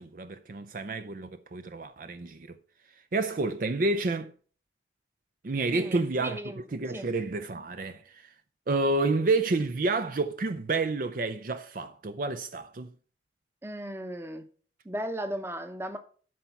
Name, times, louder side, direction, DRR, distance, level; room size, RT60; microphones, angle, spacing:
voice 1, 0.0-2.6 3.1-4.3 5.4-8.3 8.7-12.9, right 3 dB, 45° right, 0.5 m, -29 dB
voice 2, 5.7-6.6 6.9-7.1 13.6-14.4 14.8-16.0, right 1 dB, 15° right, 0.8 m, -36 dB
12.0 x 4.5 x 5.8 m
head